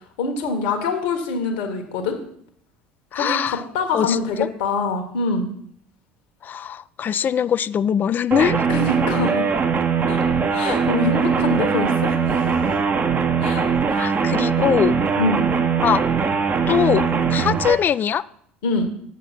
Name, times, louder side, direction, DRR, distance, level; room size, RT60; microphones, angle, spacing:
voice 1, 0.2-2.2 3.1-5.5 8.7-9.5 10.1-10.2 10.5-12.4 13.4-14.3 15.2-15.4 18.6-18.9, left 3 dB, 65° left, 4 dB, 1.3 m, -25 dB
voice 2, 3.1-3.6 3.9-4.5 6.4-8.6 13.9-14.9 15.8-16.0 16.7-18.2, left 8 dB, 35° left, 18 dB, 0.4 m, -22 dB
sound 1, 8.3-17.7, right 5 dB, 35° right, 1.0 m, -21 dB
8.4 x 7.0 x 5.9 m, 0.66 s
figure-of-eight pair, 65°, 5 cm